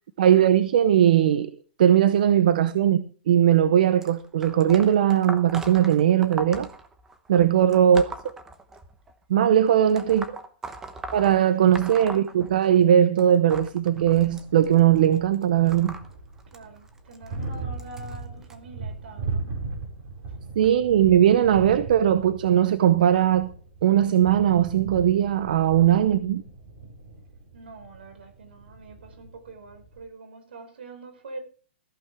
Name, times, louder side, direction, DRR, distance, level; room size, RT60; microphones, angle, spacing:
voice 1, 0.2-1.5 1.8-6.7 7.3-8.3 9.3-10.2 11.1-16.0 20.6-23.5 23.8-26.4, right 10 dB, 50° right, 0.8 m, -19 dB
sound 1, 4.0-9.1 9.9-12.9 13.2-18.5 19.3-19.6 20.6-20.7 21.6-21.7 22.4-22.5, right 3 dB, 5° right, 1.0 m, -40 dB
voice 2, 7.4-7.8 9.7-10.4 16.5-19.5 27.5-31.4, right 3 dB, 70° right, 5.0 m, -45 dB
sound 2, 14.0-30.0, right 3 dB, 30° right, 5.2 m, -38 dB
14.5 x 14.0 x 3.5 m
hypercardioid pair, 175°, 6 cm